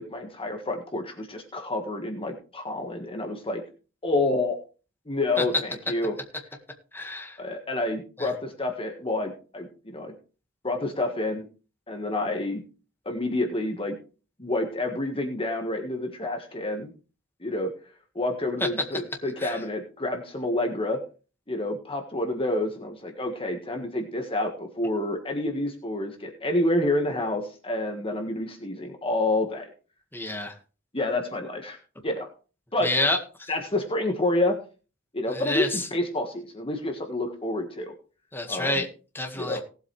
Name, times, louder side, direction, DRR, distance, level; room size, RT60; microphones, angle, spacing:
voice 1, 0.0-3.6 4.0-4.6 5.1-6.2 7.4-10.1 10.6-11.4 11.9-12.6 13.0-13.9 14.4-16.9 17.4-17.7 18.1-21.0 21.5-29.7 30.9-31.8 32.0-32.3 32.7-32.9 33.5-34.6 35.1-37.9 38.5-38.8 39.3-39.6, left 2 dB, 25° left, 4 dB, 1.6 m, -28 dB
voice 2, 6.9-7.4 8.2-8.3 19.4-19.6 30.1-30.5 32.8-33.5 35.3-35.7 38.3-38.9 39.1-39.6, left 2 dB, 10° left, 3 dB, 1.8 m, -28 dB
18.5 x 8.1 x 3.3 m, 0.35 s
head